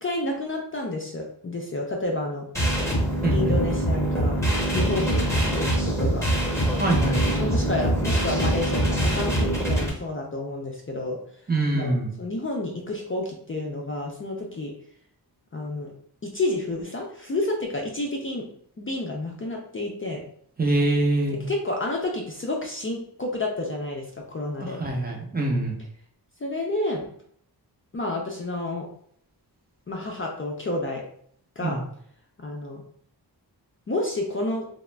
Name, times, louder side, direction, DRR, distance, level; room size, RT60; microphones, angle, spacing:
voice 1, 0.0-2.5 3.3-4.4 4.7-6.2 7.4-11.2 11.7-14.7 15.5-15.9 16.2-18.5 18.8-20.2 21.5-24.8 26.4-27.1 27.9-28.9 29.9-31.0 31.6-31.8 32.4-32.8 33.9-34.7, left 2 dB, 30° left, 0 dB, 0.4 m, -30 dB
sound 1, 2.5-9.9, right 1 dB, 5° left, 0.8 m, -23 dB
voice 2, 3.2-3.5 6.8-7.2 11.5-12.1 20.6-21.4 24.6-25.8 31.6-31.8, right 2 dB, 25° right, -2 dB, 0.6 m, -24 dB
2.4 x 2.0 x 3.1 m, 0.63 s
wide cardioid pair, 85°, 41 cm